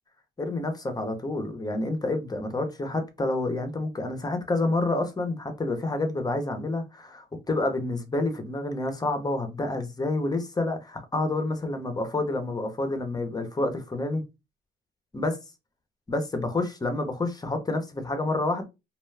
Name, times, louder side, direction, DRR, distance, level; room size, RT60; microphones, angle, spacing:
voice 1, 0.4-14.2 15.1-15.4 16.1-18.6, left 2 dB, 20° left, 0.7 m, -28 dB
2.4 x 2.2 x 3.3 m
cardioid pair, 90°, 20 cm